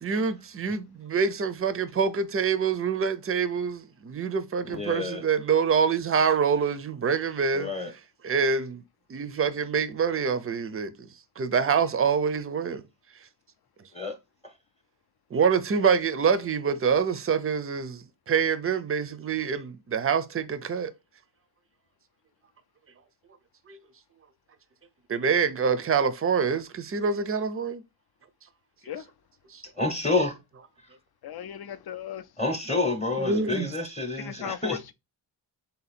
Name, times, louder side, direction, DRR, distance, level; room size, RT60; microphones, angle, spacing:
voice 1, 0.0-7.7 8.2-8.8 9.1-11.1 11.4-12.8 15.3-20.9 23.7-23.8 25.1-27.8 29.5-29.6 33.2-33.7, right 6 dB, 30° right, 0.5 m, -26 dB
voice 2, 4.6-5.2 7.5-7.9 13.9-14.1 14.4-14.5 29.8-30.4 32.4-34.8, left 3 dB, 15° left, 0.8 m, -28 dB
voice 3, 31.2-32.3 34.2-34.9, left 10 dB, 55° left, 0.5 m, -37 dB
3.9 x 2.8 x 4.0 m
wide cardioid pair, 105°, 47 cm